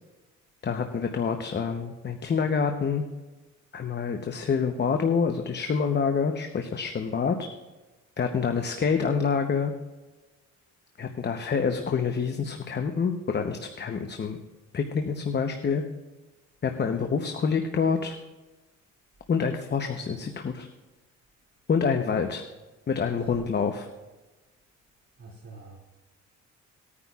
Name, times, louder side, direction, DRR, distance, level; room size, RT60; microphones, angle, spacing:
voice 1, 0.6-3.0 3.7-7.5 8.2-9.7 11.0-14.4 14.7-15.8 16.6-18.1 19.3-20.7 21.7-22.4 22.9-23.9, left 6 dB, 35° left, 5 dB, 0.9 m, -27 dB
voice 2, 25.2-25.8, right 3 dB, 50° right, -2 dB, 2.5 m, -44 dB
19.5 x 9.6 x 2.4 m, 1.2 s
cardioid pair, 90°, 30 cm